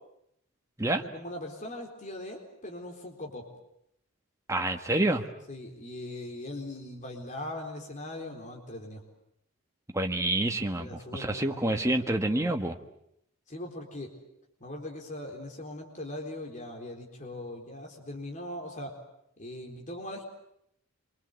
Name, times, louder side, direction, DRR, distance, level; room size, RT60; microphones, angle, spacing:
voice 1, 0.9-3.5 5.5-9.0 10.8-11.8 12.3-12.4 13.5-14.1 14.6-18.9 19.4-20.2, left 1 dB, 35° left, 1 dB, 4.1 m, -40 dB
voice 2, 4.5-5.2 9.9-12.8, right 1 dB, 15° right, 4 dB, 1.5 m, -28 dB
27.5 x 25.0 x 8.1 m, 0.78 s
head